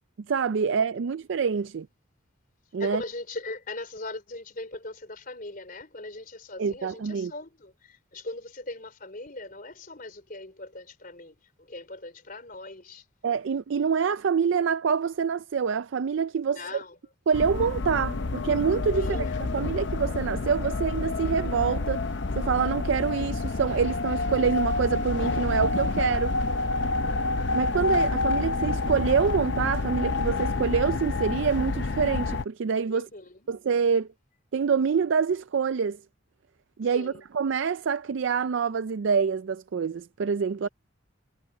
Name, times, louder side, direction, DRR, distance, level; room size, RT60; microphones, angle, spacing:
voice 1, 0.3-1.9 2.7-3.0 6.6-7.3 13.2-16.6 17.3-19.3 19.5-22.0 22.4-26.3 27.5-33.1 33.5-34.1 34.5-36.0 36.8-40.7, right 6 dB, 65° right, 0.4 m, -26 dB
voice 2, 2.8-13.0 16.5-17.0 18.9-19.4 32.9-33.5 36.9-37.2, left 2 dB, 45° left, 4.2 m, -40 dB
sound 1, 17.3-32.4, left 3 dB, 60° left, 0.6 m, -28 dB
head